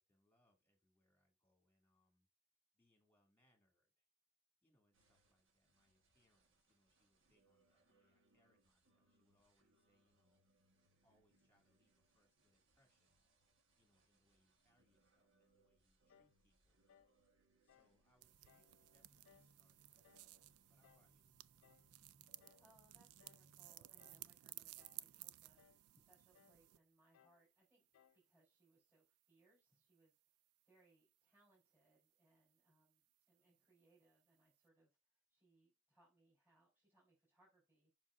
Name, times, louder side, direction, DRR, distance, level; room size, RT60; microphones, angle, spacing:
voice 1, 0.0-2.3 2.7-4.1 4.6-10.4 11.0-13.2 13.8-16.8 17.6-20.4 20.7-21.3, left 1 dB, 10° left, 2 dB, 2.1 m, -81 dB
sound 1, 4.9-24.3, right 2 dB, 55° right, 1.3 m, -77 dB
sound 2, 16.1-16.4 16.9-17.2 17.7-18.0 18.5-18.7 19.2-19.6 20.0-20.3 20.8-21.1 21.6-21.9 22.4-22.7 23.2-23.5 24.0-24.3 24.8-25.1 25.6-25.8 26.3-26.6 27.1-27.4 27.9-28.2, left 8 dB, 60° left, 0.3 m, -71 dB
sound 3, 18.2-26.8, right 16 dB, 75° right, 0.3 m, -58 dB
voice 2, 22.6-30.2 30.6-37.9, right 2 dB, 10° right, -6 dB, 3.7 m, -75 dB
7.2 x 5.7 x 2.5 m, 0.26 s
head